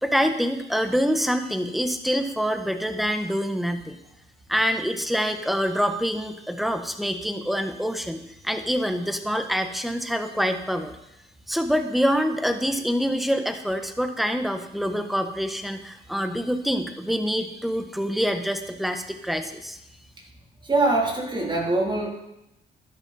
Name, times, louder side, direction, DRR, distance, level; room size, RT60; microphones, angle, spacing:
voice 1, 0.0-4.0 4.5-10.9 11.5-19.8, equal, ahead, 7 dB, 1.4 m, -26 dB
voice 2, 20.6-22.1, right 2 dB, 25° right, -1 dB, 3.5 m, -23 dB
12.5 x 11.0 x 4.4 m, 0.86 s
cardioid pair, 85°, 18 cm